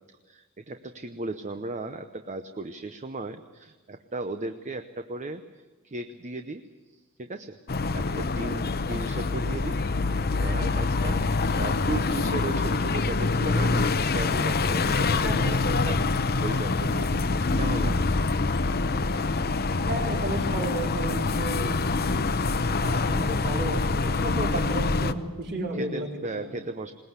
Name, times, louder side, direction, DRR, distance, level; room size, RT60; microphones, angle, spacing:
voice 1, 0.3-5.4 5.8-6.6 6.9-7.6 7.9-11.2 11.6-17.2 17.6-18.1 21.2-21.4 24.5-24.7 25.7-26.9, right 2 dB, 35° right, 8 dB, 0.8 m, -36 dB
sound 1, 7.7-25.1, left 3 dB, 45° left, 0.8 m, -25 dB
voice 2, 15.2-15.6 19.8-22.3 22.8-26.5, right 1 dB, 50° right, -1 dB, 4.4 m, -33 dB
21.0 x 20.0 x 8.1 m, 1.3 s
head